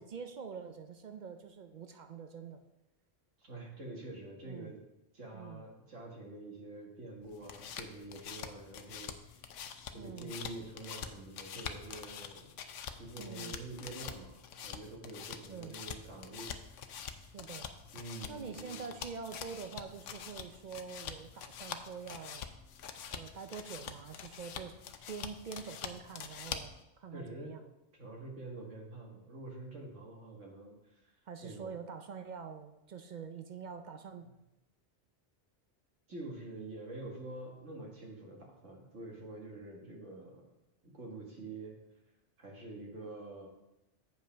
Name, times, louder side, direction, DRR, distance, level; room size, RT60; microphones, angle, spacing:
voice 1, 0.0-2.6 4.4-4.8 5.3-5.7 9.9-10.4 13.2-13.6 15.5-15.8 17.2-17.7 18.3-22.4 23.1-24.7 25.1-27.7 31.3-34.3, right 6 dB, 55° right, 7 dB, 0.5 m, -45 dB
voice 2, 3.4-4.8 5.1-9.5 9.9-12.5 12.9-17.0 17.9-18.9 27.1-27.6 28.0-31.2 31.4-31.7 36.1-40.5 40.8-41.8 42.4-43.5, right 2 dB, 75° right, 0 dB, 1.9 m, -47 dB
sound 1, 7.2-26.8, left 8 dB, 85° left, 1.0 m, -45 dB
8.0 x 5.5 x 5.0 m, 0.92 s
omnidirectional pair, 1.2 m